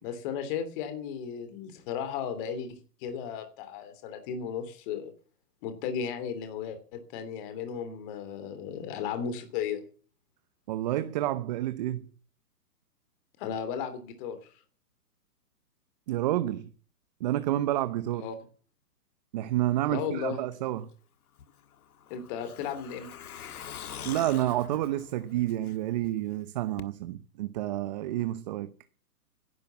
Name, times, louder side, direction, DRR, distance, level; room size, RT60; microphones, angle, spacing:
voice 1, 0.0-5.1 5.6-9.8 13.4-14.4 18.2-18.3 19.8-20.4 22.1-23.1, left 7 dB, 30° left, 3.0 m, -35 dB
voice 2, 10.7-12.1 16.1-16.7 17.2-18.3 19.3-20.9 24.0-28.7, right 14 dB, 30° right, 0.7 m, -29 dB
Truck, 21.4-26.1 26.4-26.5 26.8-26.9, left 8 dB, 65° left, 1.6 m, -44 dB
16.5 x 10.5 x 7.0 m
hypercardioid pair, 145°, 47 cm